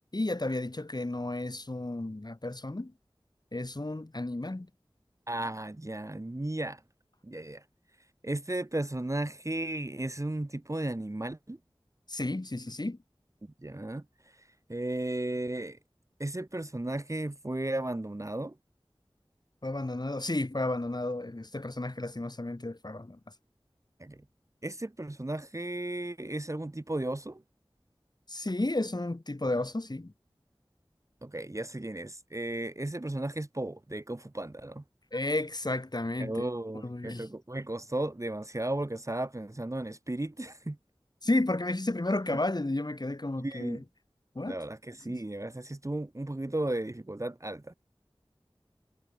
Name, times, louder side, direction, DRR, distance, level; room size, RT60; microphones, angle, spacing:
voice 1, 0.1-2.9 3.5-4.7 12.1-13.0 19.6-23.2 28.3-30.1 35.1-36.4 36.8-37.3 41.2-43.8 44.4-44.6 45.1-45.2, left 2 dB, 45° left, 2.1 m, -32 dB
voice 2, 5.3-6.8 7.2-7.6 8.2-11.6 13.4-14.0 14.7-15.8 16.2-18.6 24.0-24.2 24.6-27.4 31.2-34.8 36.2-40.8 43.4-43.8 44.4-47.7, right 1 dB, 35° right, 1.1 m, -35 dB
wide cardioid pair, 40°, 10 cm